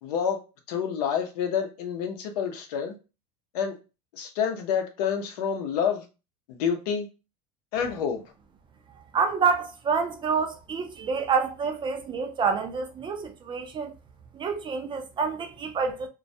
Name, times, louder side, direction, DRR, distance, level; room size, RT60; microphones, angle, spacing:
voice 1, 0.0-0.4 0.7-2.9 3.5-3.8 4.1-6.1 6.5-7.1 7.7-8.2, left 7 dB, 80° left, 0.6 m, -28 dB
voice 2, 9.1-13.9 14.3-16.1, right 5 dB, 25° right, 0.4 m, -27 dB
2.2 x 2.1 x 2.6 m
supercardioid pair, 120°, 20 cm